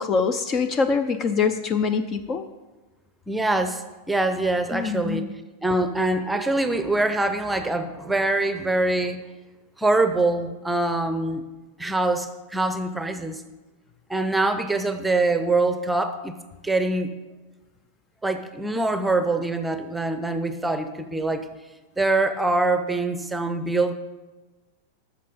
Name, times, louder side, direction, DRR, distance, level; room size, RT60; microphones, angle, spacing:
voice 1, 0.0-2.5 4.7-5.3, left 5 dB, 30° left, 11 dB, 0.5 m, -24 dB
voice 2, 3.3-3.8 4.1-5.2 5.6-9.2 9.8-11.4 11.8-13.4 14.1-16.3 16.6-17.1 18.2-21.4 22.0-23.9, right 2 dB, 5° right, 9 dB, 0.8 m, -24 dB
13.0 x 6.4 x 5.3 m, 1.2 s
figure-of-eight pair, 90°, 0 cm